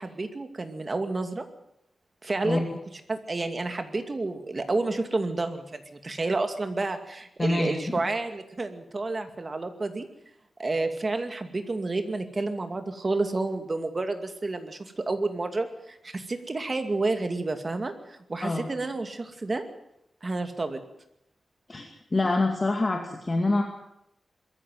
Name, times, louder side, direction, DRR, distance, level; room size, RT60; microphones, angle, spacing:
voice 1, 0.0-1.5 2.2-2.6 3.1-10.1 10.6-19.6 20.2-20.8, right 3 dB, 35° right, 7 dB, 2.4 m, -30 dB
voice 2, 7.4-7.8 18.4-18.7 21.7-23.6, left 2 dB, 30° left, 3 dB, 2.4 m, -26 dB
22.0 x 14.5 x 9.4 m, 0.80 s
wide cardioid pair, 115°, 0 cm